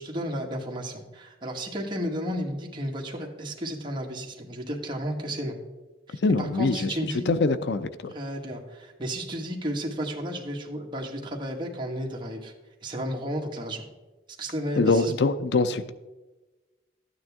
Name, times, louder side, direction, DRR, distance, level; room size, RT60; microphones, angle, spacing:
voice 1, 0.0-5.6 6.1-7.3 8.1-12.5 12.8-13.8 14.4-15.1, equal, 30° right, -1 dB, 1.7 m, -33 dB
voice 2, 6.2-7.0 7.3-8.1 14.8-15.9, left 3 dB, 75° left, 12 dB, 0.5 m, -24 dB
12.5 x 9.2 x 3.6 m, 1.1 s
head